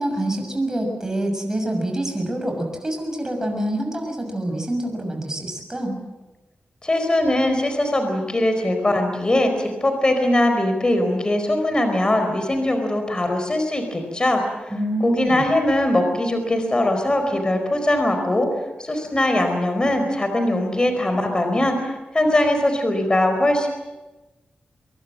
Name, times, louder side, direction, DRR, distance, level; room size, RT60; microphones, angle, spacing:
voice 1, 0.0-6.0 14.7-15.5, right 1 dB, 15° right, 3 dB, 6.5 m, -26 dB
voice 2, 6.8-14.7 15.0-18.5 18.8-23.7, left 1 dB, 25° left, 6 dB, 4.5 m, -21 dB
24.5 x 23.0 x 7.7 m, 1.1 s
wide cardioid pair, 130°, 3 cm